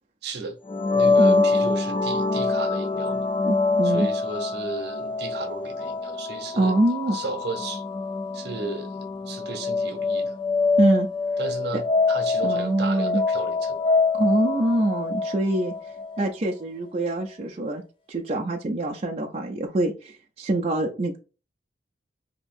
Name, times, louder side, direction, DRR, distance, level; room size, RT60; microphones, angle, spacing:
voice 1, 0.2-0.6 0.9-3.3 3.8-6.7 7.1-7.8 8.3-10.3 11.4-13.9, right 3 dB, 65° right, 0.7 m, -35 dB
sound 1, 0.7-16.3, left 3 dB, 30° left, 0.3 m, -25 dB
voice 2, 3.4-4.1 6.5-7.2 10.8-11.1 11.7-11.8 12.4-13.2 14.1-15.7 16.2-17.8 18.1-21.2, right 2 dB, 35° right, 0.4 m, -24 dB
2.9 x 2.6 x 3.6 m
head